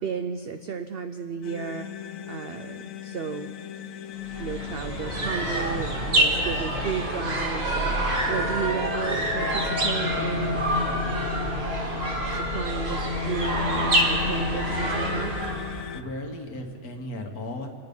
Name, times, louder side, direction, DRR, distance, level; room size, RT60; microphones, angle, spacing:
voice 1, 0.0-3.5 4.4-11.1 12.3-15.4, right 6 dB, 60° right, 9 dB, 0.6 m, -33 dB
sound 1, 1.4-16.0, left 8 dB, 70° left, 1.0 m, -34 dB
sound 2, 4.2-15.8, right 1 dB, 45° right, 1.9 m, -27 dB
voice 2, 15.9-17.7, left 1 dB, 85° left, 3 dB, 1.9 m, -35 dB
27.0 x 9.7 x 5.3 m, 2.3 s
omnidirectional pair, 1.5 m